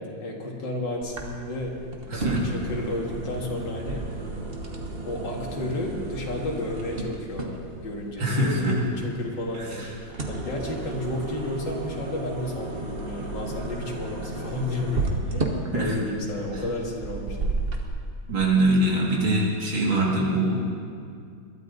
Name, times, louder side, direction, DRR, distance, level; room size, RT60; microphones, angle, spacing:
voice 1, 0.2-1.8 2.1-4.1 5.1-17.4, left 2 dB, 65° left, -2 dB, 2.8 m, -32 dB
sound 1, 1.0-17.8, right 2 dB, 35° right, 1.2 m, -33 dB
voice 2, 2.1-2.4 8.2-8.8 9.6-9.9 15.7-15.9 18.3-20.6, right 2 dB, 85° right, -3 dB, 3.2 m, -23 dB
22.0 x 12.5 x 4.1 m, 2.3 s
omnidirectional pair, 2.1 m